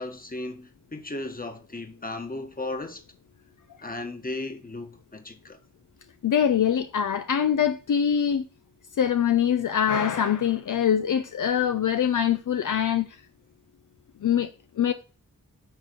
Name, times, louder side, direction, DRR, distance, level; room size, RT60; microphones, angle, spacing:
voice 1, 0.0-3.0 3.8-5.6, left 2 dB, 25° left, 1.4 m, -35 dB
voice 2, 6.2-8.5 9.0-13.1 14.2-14.5 14.8-14.9, left 8 dB, 65° left, 0.6 m, -23 dB
9.7 x 3.6 x 5.1 m
cardioid pair, 50°, 33 cm